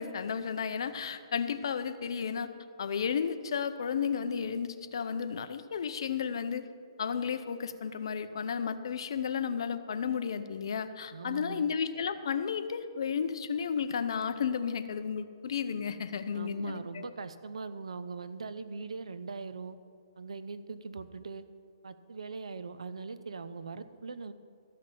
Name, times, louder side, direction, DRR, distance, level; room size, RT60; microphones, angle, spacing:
voice 1, 0.0-2.5 2.8-6.7 7.0-17.0, left 7 dB, 60° left, 11 dB, 0.7 m, -33 dB
voice 2, 11.1-11.6 16.3-19.8 20.2-21.4 21.8-24.3, right 4 dB, 90° right, 12 dB, 0.7 m, -41 dB
13.5 x 5.9 x 7.6 m, 2.3 s
hypercardioid pair, 165°, 3 cm